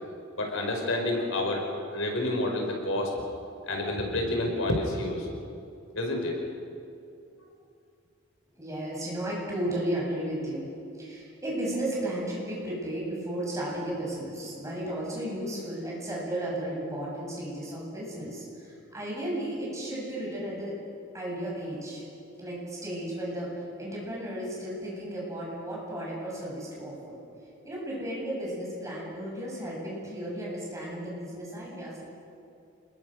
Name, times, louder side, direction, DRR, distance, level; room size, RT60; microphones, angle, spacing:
voice 1, 0.4-3.2 3.6-5.3 5.9-6.4, left 1 dB, 85° left, 2 dB, 4.7 m, -29 dB
voice 2, 8.6-10.7 11.0-20.7 21.1-22.0 22.4-27.2 27.6-32.0, right 1 dB, 15° right, -4 dB, 7.7 m, -34 dB
27.5 x 21.5 x 6.4 m, 2.6 s
head